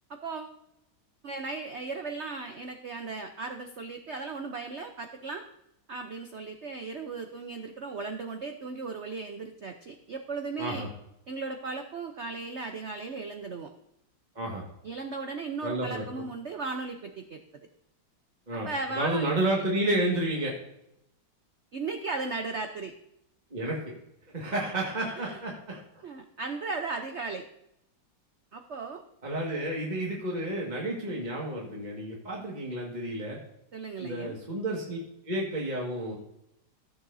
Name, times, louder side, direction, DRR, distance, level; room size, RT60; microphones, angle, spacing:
voice 1, 0.1-0.6 1.2-5.4 5.9-10.9 11.3-13.7 14.8-17.4 18.6-19.7 21.7-22.9 25.2-25.4 26.0-27.4 28.5-29.0 33.7-34.4, right 3 dB, 80° right, 5 dB, 0.6 m, -36 dB
voice 2, 15.6-16.2 18.5-18.7 19.0-20.6 23.5-23.8 24.3-25.8 29.2-33.4 34.0-35.0 35.2-36.2, right 1 dB, 20° right, -3 dB, 1.8 m, -31 dB
16.0 x 7.2 x 2.7 m, 0.81 s
omnidirectional pair, 2.2 m